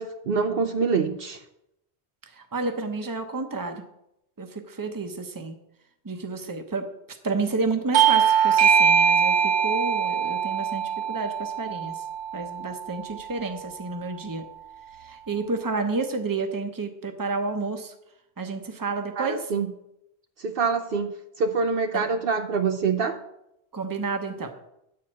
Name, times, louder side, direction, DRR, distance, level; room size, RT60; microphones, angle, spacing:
voice 1, 0.0-1.4 19.2-19.7 20.4-23.2, right 5 dB, 65° right, 7 dB, 0.8 m, -25 dB
voice 2, 2.4-3.8 4.4-5.6 6.0-6.9 7.2-12.0 12.3-14.4 15.0-17.9 18.4-19.4 21.9-22.1 23.7-24.5, right 3 dB, 20° right, 6 dB, 0.8 m, -30 dB
Bell / Doorbell, 7.9-13.0, right 7 dB, 85° right, 1.0 m, -22 dB
9.7 x 4.8 x 7.5 m, 0.83 s
omnidirectional pair, 1.1 m